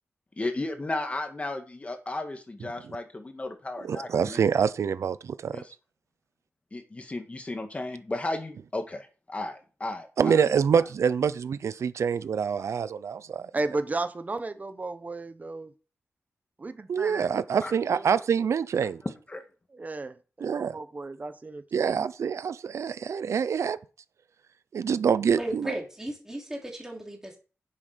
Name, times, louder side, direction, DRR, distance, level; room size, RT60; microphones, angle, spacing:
voice 1, 0.4-4.4 5.5-5.7 6.7-10.5 17.6-17.7 19.3-19.4, left 2 dB, 25° left, 1.9 m, -34 dB
voice 2, 3.8-5.6 10.2-13.5 16.9-19.0 20.4-20.8 21.7-23.8 24.7-25.7, right 7 dB, 80° right, 0.6 m, -26 dB
voice 3, 13.5-15.7 16.6-17.6 17.9-18.2 19.7-21.8, right 3 dB, 35° right, 0.9 m, -34 dB
voice 4, 25.4-27.4, right 1 dB, 10° right, 3.2 m, -35 dB
9.9 x 7.4 x 5.1 m
wide cardioid pair, 120°, 5 cm